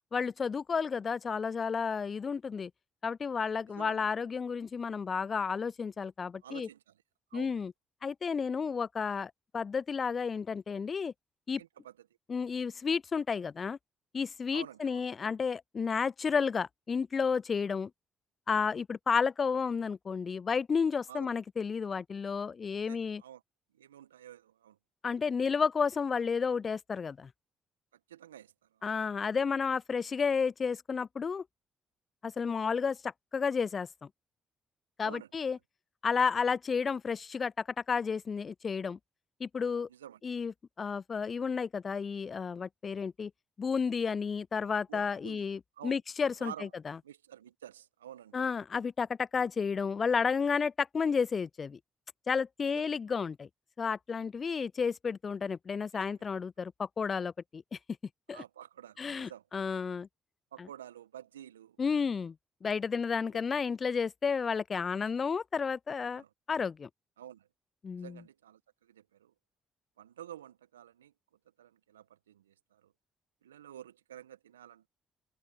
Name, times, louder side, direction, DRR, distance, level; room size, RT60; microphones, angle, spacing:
voice 1, 0.1-2.7 3.0-6.7 7.3-7.7 8.0-11.1 11.5-11.6 12.3-13.8 14.1-17.9 18.5-23.2 25.0-27.3 28.8-31.4 32.2-33.9 35.0-35.6 36.0-39.0 39.4-39.9 40.2-40.5 40.8-43.3 43.6-46.5 46.9-47.0 48.3-51.8 52.3-53.5 53.8-57.8 58.3-58.4 59.0-60.1 60.6-60.7 61.8-62.3 62.6-66.9 67.8-68.2, left 5 dB, 40° left, 0.3 m, -32 dB
voice 2, 3.7-4.0 6.4-7.0 7.3-7.5 11.6-12.1 14.5-15.0 21.1-21.3 22.8-23.4 23.7-24.8 28.1-29.0 35.0-35.3 39.9-40.2 44.9-45.4 45.8-46.0 46.4-46.7 47.0-48.4 52.6-53.0 55.9-56.0 58.3-59.4 60.5-61.8 63.3-63.4 66.1-66.3 67.2-67.5 67.9-69.3 70.0-71.1 71.6-72.9 73.4-74.9, right 11 dB, 85° right, 1.5 m, -50 dB
figure-of-eight pair, 45°, 0 cm